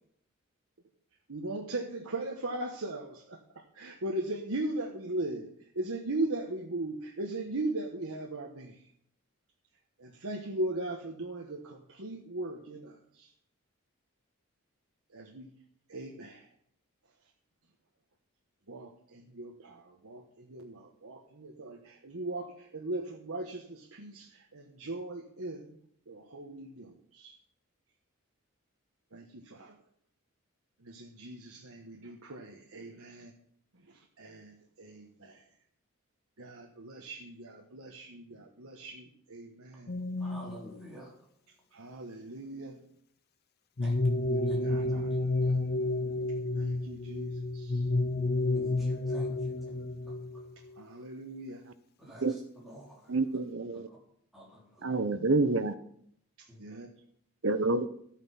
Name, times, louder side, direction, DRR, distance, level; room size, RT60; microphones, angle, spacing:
voice 1, 1.3-8.8 10.0-13.3 15.1-15.5 15.9-16.5 18.7-25.8 26.1-27.4 29.1-29.8 30.8-33.3 33.8-35.4 36.4-39.9 41.7-42.8 44.1-45.1 46.5-47.9 50.8-51.6 56.6-56.9, right 2 dB, 80° right, 0 dB, 1.3 m, -39 dB
sound 1, 39.9-40.9 43.8-50.8, left 2 dB, 45° left, 0.7 m, -30 dB
voice 2, 40.2-41.1 43.8-44.0 44.4-44.6 44.9-45.6 48.5-49.3 50.9-51.0 52.0-53.1 53.7-53.8 54.3-54.9, equal, ahead, -5 dB, 3.6 m, -50 dB
voice 3, 53.1-53.9 54.8-55.7 57.4-57.9, right 3 dB, 60° right, 11 dB, 0.9 m, -28 dB
13.0 x 8.9 x 5.8 m, 0.68 s
head